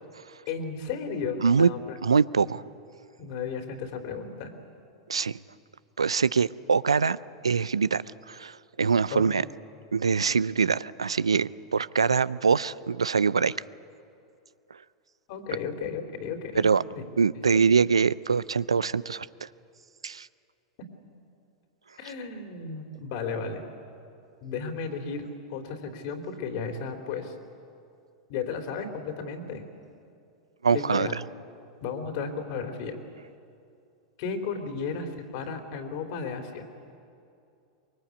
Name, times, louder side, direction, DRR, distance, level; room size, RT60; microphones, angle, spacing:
voice 1, 0.5-2.0 2.4-2.5 3.2-4.5 9.1-9.3 15.3-17.0 17.5-17.6 22.0-23.7 24.4-27.3 28.3-29.7 30.7-31.2 31.8-33.0 34.2-36.7, left 5 dB, 55° left, 6 dB, 3.3 m, -34 dB
voice 2, 2.0-2.6 5.1-5.4 6.0-7.2 7.4-9.4 9.9-13.6 16.5-16.8 17.2-19.5 20.0-20.3 30.6-31.1, right 5 dB, 85° right, 19 dB, 0.5 m, -24 dB
24.0 x 22.0 x 8.4 m, 2.5 s
hypercardioid pair, 95°, 3 cm